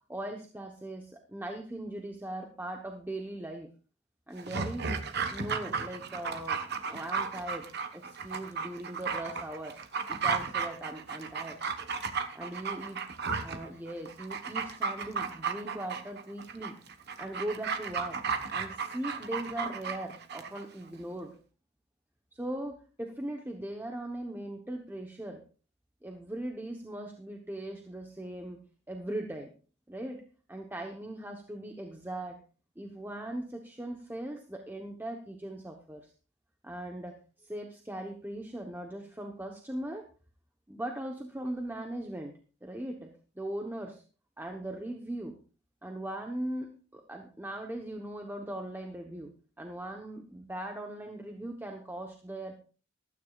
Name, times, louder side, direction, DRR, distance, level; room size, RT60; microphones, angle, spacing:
voice 1, 0.1-3.7 4.3-5.0 5.3-7.7 7.9-9.8 10.1-11.6 12.3-13.0 13.4-16.8 17.2-18.2 18.5-21.4 22.3-25.4 26.0-28.6 28.9-29.5 29.9-30.2 30.5-32.4 32.8-36.1 36.6-40.1 40.7-44.0 44.4-45.4 45.8-52.5, right 1 dB, 10° right, 3 dB, 1.0 m, -39 dB
Dog, 4.4-20.6 20.9-21.0, right 5 dB, 55° right, 1.2 m, -34 dB
15.5 x 13.0 x 2.5 m, 0.37 s
head